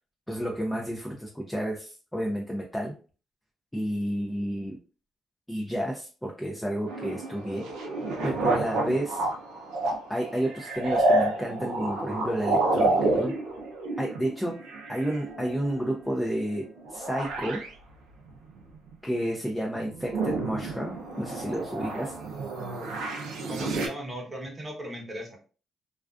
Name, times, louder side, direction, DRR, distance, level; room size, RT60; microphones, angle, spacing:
voice 1, 0.3-2.9 3.7-4.8 5.5-7.6 8.2-9.2 10.1-13.3 14.0-14.5 14.9-16.6 16.9-17.6 19.0-22.2, equal, 5° left, -1 dB, 0.4 m, -31 dB
sound 1, 6.9-16.2 16.5-17.7 18.3-19.3 19.7-23.9, right 2 dB, 85° right, 0.5 m, -29 dB
voice 2, 23.5-25.4, right 1 dB, 30° right, 1 dB, 0.8 m, -37 dB
2.4 x 2.3 x 2.3 m, 0.37 s
cardioid pair, 90°, 0 cm